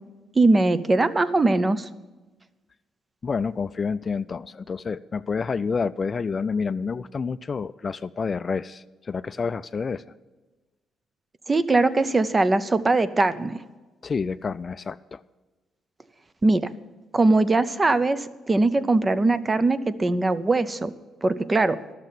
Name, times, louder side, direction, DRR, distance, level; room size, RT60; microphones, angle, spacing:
voice 1, 0.4-1.9 11.5-13.6 16.4-16.7 17.1-20.9 21.2-21.8, right 2 dB, 25° right, 13 dB, 0.6 m, -21 dB
voice 2, 3.2-10.0 14.0-15.2, left 5 dB, 40° left, 14 dB, 0.3 m, -28 dB
12.0 x 6.6 x 9.1 m, 1.2 s
cardioid pair, 90°, 0 cm